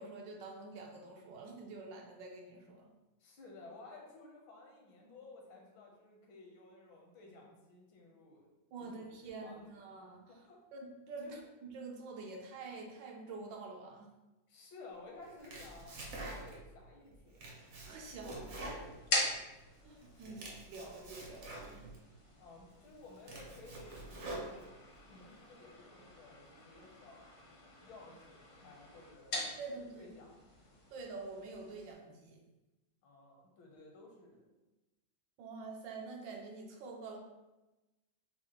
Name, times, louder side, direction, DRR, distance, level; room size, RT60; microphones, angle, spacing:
voice 1, 0.0-2.9 8.7-10.4 10.7-14.1 17.9-18.5 19.8-21.9 29.6-30.1 30.9-32.4 35.4-37.2, right 3 dB, 75° right, 1 dB, 1.2 m, -47 dB
voice 2, 3.2-8.5 8.9-9.7 10.3-10.6 11.2-11.4 14.5-17.4 18.2-18.4 20.3-20.4 22.4-27.4 27.8-30.5 33.0-34.6, left 2 dB, 80° left, 0 dB, 1.6 m, -55 dB
Domestic sounds home sounds, 15.2-16.7 17.1-19.6 20.0-22.0 22.5-22.6 23.0-25.0, right 1 dB, 55° right, 0.8 m, -46 dB
sound 1, 17.6-31.9, left 2 dB, 55° left, 0.6 m, -44 dB
6.2 x 2.1 x 2.9 m, 1.0 s
omnidirectional pair, 2.2 m